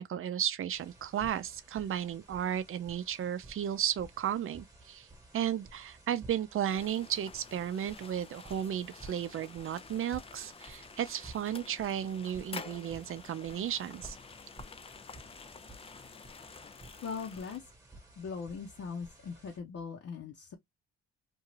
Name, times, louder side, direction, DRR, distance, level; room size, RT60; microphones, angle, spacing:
voice 1, 0.0-5.1 5.3-14.2, right 10 dB, 45° right, 0.5 m, -34 dB
sound 1, 0.7-19.6, right 2 dB, 10° right, 1.2 m, -54 dB
sound 2, 6.7-17.6, left 5 dB, 20° left, 0.3 m, -50 dB
voice 2, 17.0-17.6 18.2-20.6, left 5 dB, 50° left, 0.9 m, -40 dB
2.7 x 2.4 x 3.1 m
cardioid pair, 90°, 30 cm